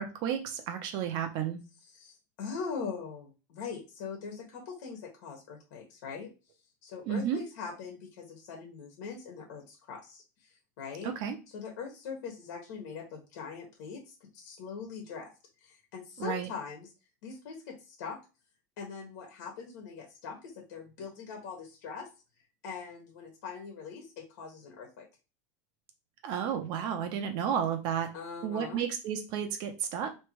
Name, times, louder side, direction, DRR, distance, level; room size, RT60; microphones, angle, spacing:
voice 1, 0.0-1.6 7.1-7.4 11.0-11.4 16.2-16.5 26.2-28.1 28.4-30.1, right 8 dB, 50° right, 5 dB, 0.7 m, -32 dB
voice 2, 1.9-6.3 6.8-10.2 10.8-11.1 11.5-15.3 15.6-16.9 17.2-18.2 18.8-22.1 22.6-25.1 28.1-28.9, left 5 dB, 75° left, 1 dB, 1.4 m, -41 dB
3.3 x 2.9 x 4.6 m, 0.30 s
supercardioid pair, 140°, 10 cm